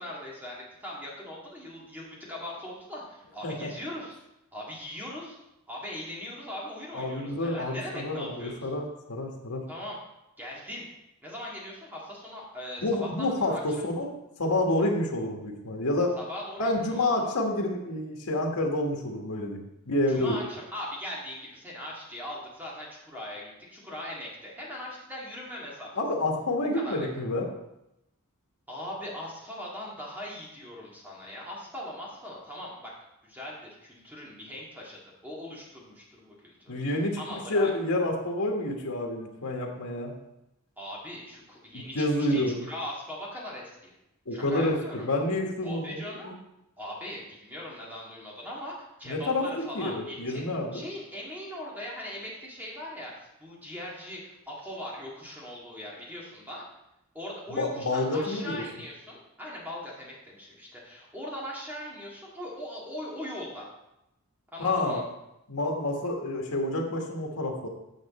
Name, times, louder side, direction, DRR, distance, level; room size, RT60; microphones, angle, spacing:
voice 1, 0.0-4.2 4.5-5.4 5.7-8.7 9.7-10.0 10.4-10.9 11.2-13.6 16.2-17.1 20.1-25.9 26.7-27.1 28.7-32.9 33.2-36.8 37.2-37.7 40.8-43.9 44.3-45.0 45.6-46.3 46.8-50.5 50.7-56.7 57.1-63.7 64.5-65.0, left 1 dB, 10° right, -4 dB, 2.0 m, -40 dB
voice 2, 6.9-9.6 12.8-14.1 14.4-16.1 16.6-20.4 26.0-27.5 36.7-37.2 37.5-40.1 41.7-42.6 44.3-46.3 49.1-50.8 57.5-58.6 64.6-65.0 65.5-67.7, left 1 dB, 85° left, 1 dB, 1.5 m, -28 dB
8.8 x 6.3 x 4.2 m, 0.89 s
head